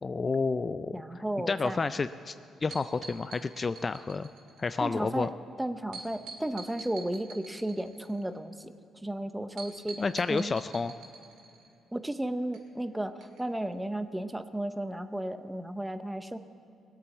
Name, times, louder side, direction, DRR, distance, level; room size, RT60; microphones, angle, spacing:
voice 1, 0.0-2.3 2.6-4.3 4.6-5.3 10.0-10.9, left 4 dB, 30° left, 12 dB, 0.3 m, -30 dB
voice 2, 0.9-1.8 4.8-5.3 5.6-8.7 9.0-10.5 11.9-16.4, right 1 dB, 5° right, 10 dB, 0.7 m, -34 dB
sound 1, 2.7-4.8 5.9-8.4 9.6-11.7 12.5-12.6 13.2-13.4 13.7-13.8, right 4 dB, 85° right, 2.0 m, -45 dB
19.5 x 8.4 x 7.1 m, 2.6 s
cardioid pair, 90°, 0 cm